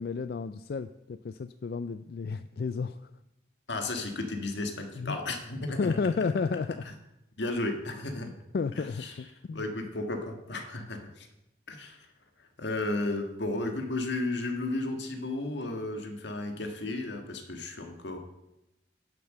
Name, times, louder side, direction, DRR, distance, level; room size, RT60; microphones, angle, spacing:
voice 1, 0.0-3.0 5.0-5.2 5.8-6.7 8.2-9.6, left 4 dB, 60° left, 12 dB, 0.3 m, -32 dB
voice 2, 3.7-6.0 6.8-6.9 7.4-8.3 8.7-9.2 9.5-11.3 11.7-12.1 12.4-18.2, left 2 dB, 80° left, 5 dB, 1.6 m, -34 dB
10.5 x 6.9 x 6.5 m, 0.91 s
head